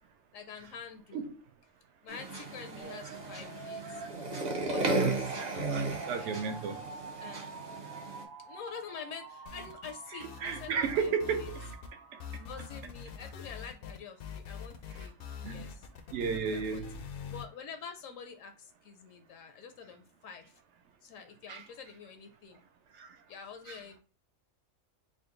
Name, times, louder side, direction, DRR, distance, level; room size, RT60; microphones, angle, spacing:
voice 1, 0.3-1.3 2.0-4.0 4.6-5.3 5.5-6.3 7.2-7.4 8.4-11.5 12.3-15.2 15.4-15.8 16.5-16.9 17.2-20.6 21.0-22.6 23.3-24.0, left 6 dB, 80° left, 1.0 m, -47 dB
sound 1, 2.1-8.2, right 3 dB, 40° right, 0.7 m, -35 dB
sound 2, 2.8-12.8, right 4 dB, 85° right, 1.2 m, -47 dB
voice 2, 4.6-6.8 10.4-11.8 12.1-12.4 14.9-15.1 15.4-15.7 16.1-17.1 21.5-21.7 22.9-23.2 23.7-23.8, right 6 dB, 65° right, 0.9 m, -35 dB
sound 3, 9.5-10.0 10.2-11.9 12.2-17.5, left 6 dB, 60° left, 0.6 m, -44 dB
3.8 x 2.3 x 3.7 m
omnidirectional pair, 1.4 m